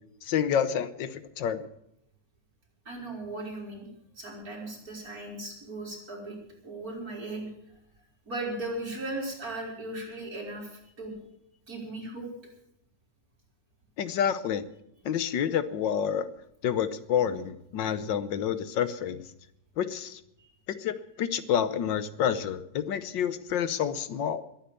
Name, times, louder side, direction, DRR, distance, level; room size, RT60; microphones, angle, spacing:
voice 1, 0.2-1.7 14.0-14.6 15.0-16.3 16.6-19.2 19.8-20.2 20.7-24.4, left 8 dB, 90° left, 13 dB, 1.7 m, -28 dB
voice 2, 2.8-3.9 4.2-6.4 6.6-7.5 8.3-11.2 11.7-12.3 20.4-20.5, right 2 dB, 55° right, -2 dB, 5.0 m, -37 dB
21.5 x 9.0 x 6.9 m, 0.77 s
omnidirectional pair, 1.9 m